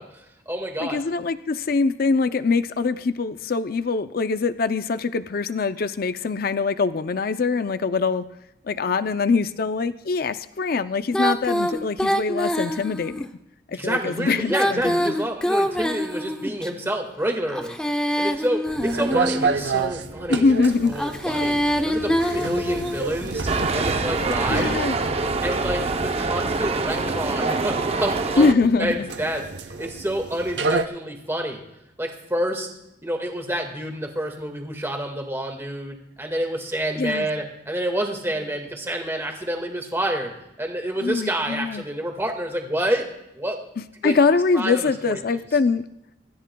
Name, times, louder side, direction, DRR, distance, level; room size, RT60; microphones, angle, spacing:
voice 1, 0.0-1.0 13.7-17.8 18.2-20.5 20.9-21.6 21.8-24.8 25.4-28.5 28.8-31.6 32.0-32.7 33.0-43.0 43.4-43.6 44.0-44.2 44.5-45.2, right 1 dB, 15° right, 3 dB, 1.7 m, -28 dB
voice 2, 0.8-8.2 8.6-13.3 13.7-15.1 20.3-21.0 22.2-22.4 24.5-25.0 28.4-29.1 37.0-37.3 41.0-41.8 44.0-45.9, left 4 dB, 55° left, 11 dB, 0.5 m, -23 dB
Female singing, 11.1-13.3 14.4-16.7 17.5-19.6 20.9-23.1, equal, 5° left, 0.7 m, -25 dB
sound 1, 18.7-30.8, right 4 dB, 75° right, 0.8 m, -30 dB
sound 2, 23.5-28.5, right 3 dB, 35° right, 0.6 m, -25 dB
24.5 x 13.5 x 2.3 m, 0.85 s
head